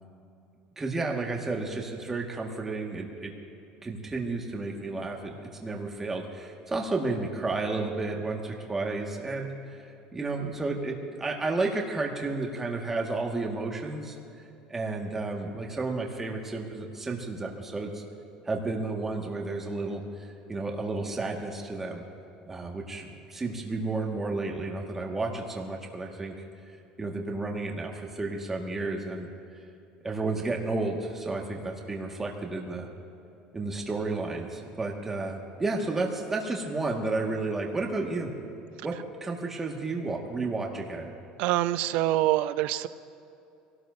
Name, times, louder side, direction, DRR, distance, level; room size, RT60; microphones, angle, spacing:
voice 1, 0.8-3.3 3.8-5.3 5.6-9.5 10.1-14.2 14.7-18.0 18.4-22.0 22.5-26.3 27.0-29.3 30.0-32.9 33.5-38.3 38.8-41.1, right 3 dB, 15° right, 0 dB, 1.7 m, -32 dB
voice 2, 41.4-42.9, right 14 dB, 65° right, 14 dB, 0.4 m, -25 dB
23.0 x 17.5 x 2.7 m, 2.7 s
cardioid pair, 140°, 2 cm